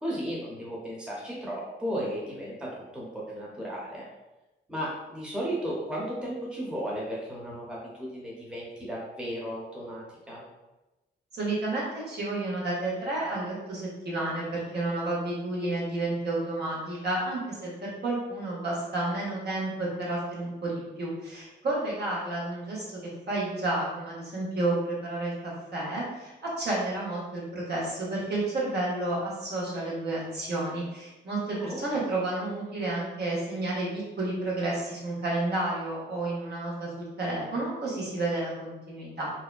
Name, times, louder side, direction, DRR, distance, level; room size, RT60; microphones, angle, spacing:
voice 1, 0.0-2.7 2.9-4.0 4.7-10.4 31.5-31.8, equal, 5° right, -5 dB, 0.8 m, -35 dB
voice 2, 11.3-39.3, right 2 dB, 60° right, -6 dB, 1.0 m, -31 dB
2.7 x 2.1 x 2.4 m, 1.0 s
cardioid pair, 75°, 19 cm